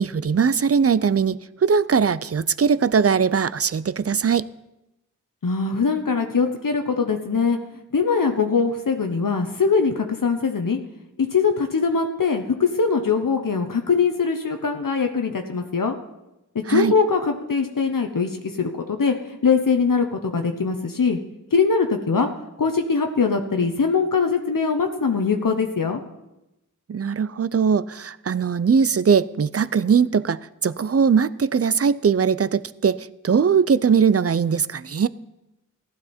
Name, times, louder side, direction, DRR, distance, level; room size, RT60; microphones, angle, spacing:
voice 1, 0.0-4.5 16.7-16.9 26.9-35.1, right 6 dB, 45° right, 18 dB, 0.5 m, -20 dB
voice 2, 5.4-7.6 7.9-10.8 11.2-16.0 16.5-19.1 19.4-21.2 21.5-22.3 22.6-26.0, left 5 dB, 80° left, 4 dB, 0.9 m, -22 dB
15.0 x 12.5 x 4.3 m, 0.94 s
wide cardioid pair, 55°, 33 cm